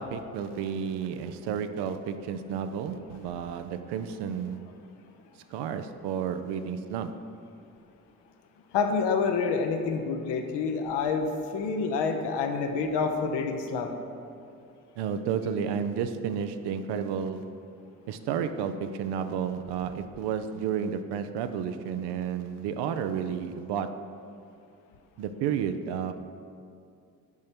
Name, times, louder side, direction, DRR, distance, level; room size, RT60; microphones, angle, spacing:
voice 1, 0.0-4.6 5.5-7.2 15.0-17.5 18.1-24.1 25.2-26.1, right 7 dB, 60° right, 9 dB, 0.6 m, -31 dB
voice 2, 8.7-11.3 11.5-13.9, left 5 dB, 65° left, 5 dB, 0.9 m, -27 dB
7.2 x 5.3 x 6.0 m, 2.4 s
hypercardioid pair, 40°, 45 cm